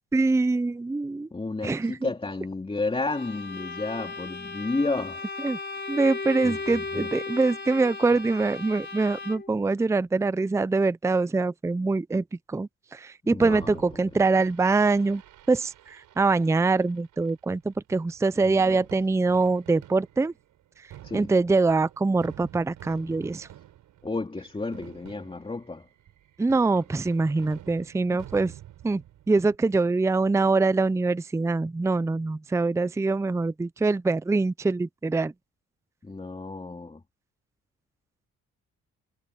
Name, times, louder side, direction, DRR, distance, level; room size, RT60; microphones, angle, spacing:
voice 1, 0.1-1.3 1.6-2.1 5.4-5.6 5.9-15.2 15.5-20.3 21.1-23.5 26.4-28.5 28.8-29.0 29.3-35.3, right 3 dB, 10° right, 0.5 m, -24 dB
voice 2, 1.3-5.3 6.4-7.1 13.2-14.0 18.5-18.8 21.0-21.3 24.0-25.9 36.0-37.0, left 3 dB, 20° left, 2.7 m, -32 dB
Bowed string instrument, 3.1-9.6, left 3 dB, 35° left, 4.2 m, -36 dB
Fireworks, 13.4-29.5, right 13 dB, 80° right, 6.5 m, -49 dB
cardioid pair, 90°, 30 cm